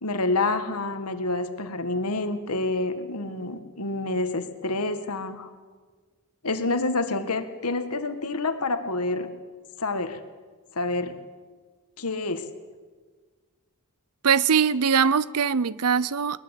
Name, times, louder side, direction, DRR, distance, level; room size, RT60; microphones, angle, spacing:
voice 1, 0.0-5.5 6.4-9.3 9.8-10.2 10.7-11.2 12.0-12.5, left 2 dB, 90° left, 9 dB, 1.9 m, -28 dB
voice 2, 14.2-16.4, right 6 dB, 85° right, 19 dB, 0.7 m, -22 dB
21.5 x 21.0 x 8.3 m, 1.5 s
head